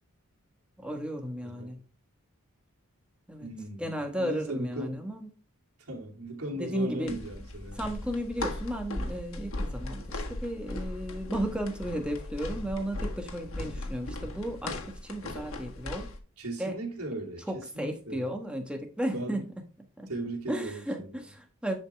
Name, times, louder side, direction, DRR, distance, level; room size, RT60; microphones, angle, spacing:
voice 1, 0.8-1.8 3.3-3.5 3.8-5.3 6.6-7.2 7.7-16.1 16.6-16.8 17.5-20.1 20.5-21.7, equal, 5° right, 1.3 m, -34 dB
voice 2, 3.4-5.1 5.9-7.8 13.7-13.9 16.4-18.3 19.1-19.4 20.1-21.2, right 1 dB, 85° right, 2.9 m, -37 dB
sound 1, 7.1-16.2, left 1 dB, 65° left, 1.6 m, -37 dB
10.5 x 5.1 x 3.5 m
head